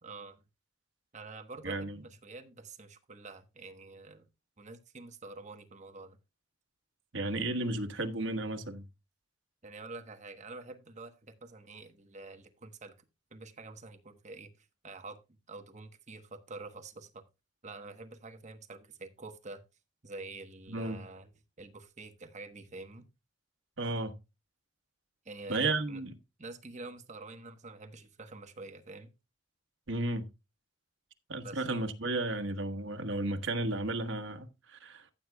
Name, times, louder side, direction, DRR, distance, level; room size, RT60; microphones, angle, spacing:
voice 1, 0.0-0.4 1.1-4.2 4.6-6.2 9.6-12.9 13.3-15.2 15.5-17.2 17.6-19.6 20.0-21.3 21.6-23.0 25.2-26.0 26.4-29.1 31.3-31.7, right 3 dB, 40° right, 1.2 m, -47 dB
voice 2, 1.6-2.0 7.1-8.8 20.7-21.0 23.8-24.1 25.5-26.1 29.9-30.3 31.3-35.1, right 2 dB, 85° right, 1.4 m, -33 dB
14.5 x 8.0 x 2.3 m
head